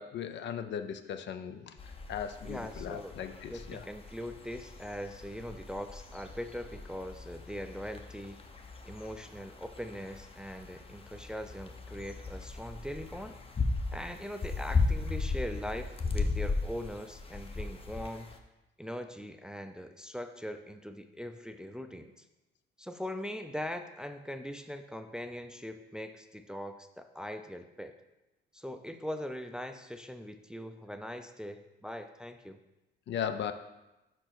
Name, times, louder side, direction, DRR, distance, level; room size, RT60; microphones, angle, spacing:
voice 1, 0.0-1.8 2.1-3.9 33.1-33.5, left 8 dB, 65° left, 9 dB, 0.5 m, -37 dB
sound 1, 1.8-18.4, left 3 dB, 30° left, 0.7 m, -37 dB
voice 2, 2.4-3.1 3.5-8.4 8.9-13.4 13.9-18.4 18.8-22.2 22.8-27.9 28.5-32.6, equal, 5° right, 8 dB, 0.4 m, -41 dB
4.9 x 4.4 x 5.9 m, 0.98 s
cardioid pair, 90°, 20 cm